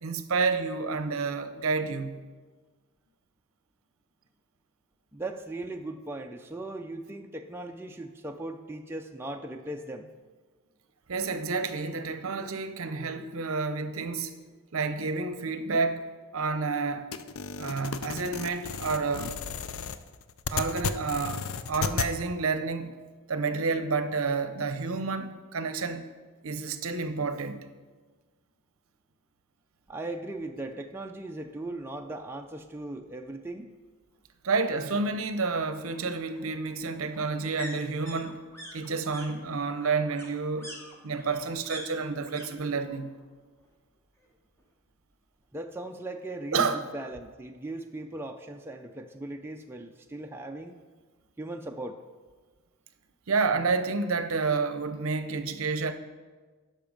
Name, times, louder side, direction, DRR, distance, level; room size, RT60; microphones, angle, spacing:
voice 1, 0.0-2.2 11.1-14.3 14.7-17.1 17.6-19.3 20.5-21.4 21.7-23.0 23.3-26.1 26.4-27.7 34.4-38.4 38.7-40.7 41.0-43.1 46.5-46.8 53.3-55.9, right 4 dB, 65° right, 0.7 m, -29 dB
voice 2, 5.1-10.1 29.9-33.7 45.5-50.7 51.4-52.0, right 2 dB, 10° right, 0.4 m, -38 dB
sound 1, 17.1-22.1, left 6 dB, 65° left, 0.5 m, -33 dB
sound 2, 31.6-31.7 32.0-32.1 32.4-33.4 34.7-42.5 42.7-43.3 43.6-44.6 44.9-45.0, equal, 10° left, 1.3 m, -47 dB
12.0 x 5.8 x 5.2 m
head